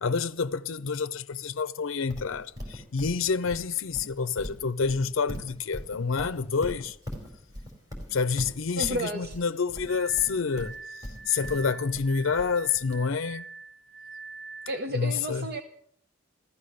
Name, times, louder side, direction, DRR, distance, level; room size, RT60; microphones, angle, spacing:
voice 1, 0.0-7.0 8.1-10.7 11.3-13.5 14.9-15.5, left 5 dB, 70° left, 0.6 m, -28 dB
Livestock farm animals working animals, 2.1-12.9, left 1 dB, 20° right, 4.3 m, -40 dB
voice 2, 8.8-9.4 14.7-15.6, equal, 50° right, 1.0 m, -32 dB
Glass, 9.9-14.9, right 4 dB, 85° right, 3.3 m, -44 dB
15.0 x 14.5 x 6.5 m
head